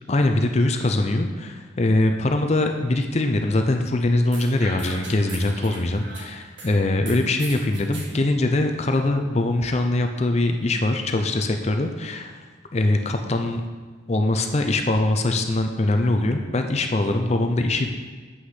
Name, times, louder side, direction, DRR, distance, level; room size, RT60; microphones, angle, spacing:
voice 1, 0.1-12.4 12.7-13.6 14.1-17.9, left 2 dB, 35° left, 5 dB, 0.5 m, -22 dB
sound 1, 4.3-6.7 7.1-8.1, right 2 dB, 65° right, 1.6 m, -38 dB
7.9 x 6.1 x 5.7 m, 1.4 s
head